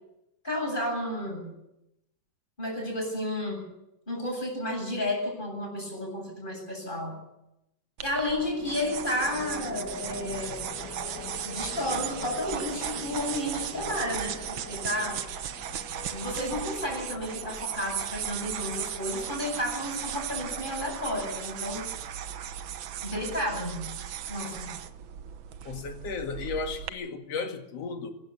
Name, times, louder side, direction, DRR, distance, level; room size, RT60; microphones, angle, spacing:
voice 1, 0.4-1.5 2.6-3.6 4.1-7.2 8.0-10.6 11.4-15.2 16.1-21.8 23.0-23.9 24.3-24.7, left 1 dB, 15° left, 8.0 m, -32 dB
sound 1, 8.0-26.9, right 10 dB, 85° right, 1.0 m, -37 dB
sound 2, 8.2-22.4, left 5 dB, 40° left, 2.0 m, -44 dB
voice 2, 25.6-28.1, left 4 dB, 55° left, 3.0 m, -34 dB
24.5 x 14.5 x 8.4 m
omnidirectional pair, 3.5 m